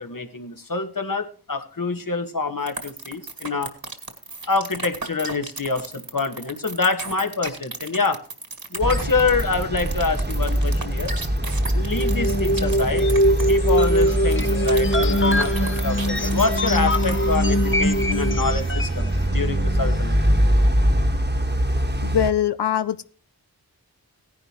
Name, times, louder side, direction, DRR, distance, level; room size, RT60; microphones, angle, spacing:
voice 1, 0.0-3.7 4.5-8.2 8.7-11.1 11.7-13.1 13.5-20.2, left 4 dB, 55° left, 6 dB, 1.6 m, -26 dB
sound 1, 2.7-17.3, right 3 dB, 60° right, 1.9 m, -34 dB
sound 2, 8.8-22.3, equal, 25° right, 1.3 m, -23 dB
sound 3, 11.9-19.1, equal, 30° left, 1.0 m, -22 dB
voice 2, 22.0-23.0, left 10 dB, 90° left, 13 dB, 0.6 m, -22 dB
16.5 x 10.5 x 3.0 m, 0.39 s
wide cardioid pair, 45°, 39 cm